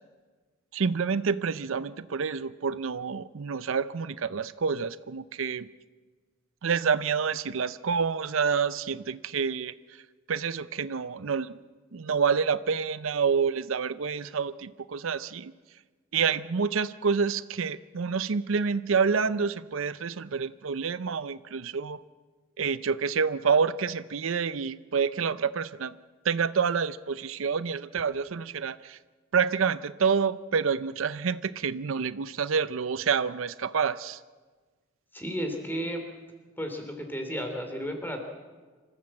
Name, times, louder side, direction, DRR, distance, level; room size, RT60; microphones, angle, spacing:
voice 1, 0.7-5.7 6.6-9.7 10.3-11.5 11.9-15.5 16.1-22.0 22.6-25.9 26.2-29.0 29.3-34.2, right 6 dB, 70° right, 15 dB, 0.5 m, -28 dB
voice 2, 35.1-36.0 36.6-38.2, equal, 10° left, 4 dB, 3.1 m, -33 dB
26.0 x 14.5 x 7.6 m, 1.4 s
head